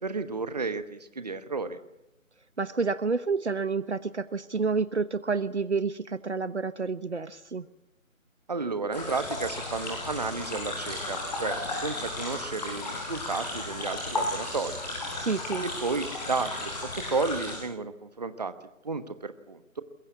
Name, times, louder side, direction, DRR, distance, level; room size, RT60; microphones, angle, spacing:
voice 1, 0.0-1.8 8.5-14.8 15.6-18.5 18.8-19.8, right 4 dB, 30° right, 11 dB, 1.2 m, -32 dB
voice 2, 2.6-7.6 15.2-15.6, right 4 dB, 55° right, 15 dB, 1.1 m, -29 dB
sound 1, 8.9-17.6, left 2 dB, 30° left, 7.6 m, -34 dB
24.0 x 22.0 x 8.4 m, 0.87 s
figure-of-eight pair, 160°, 41 cm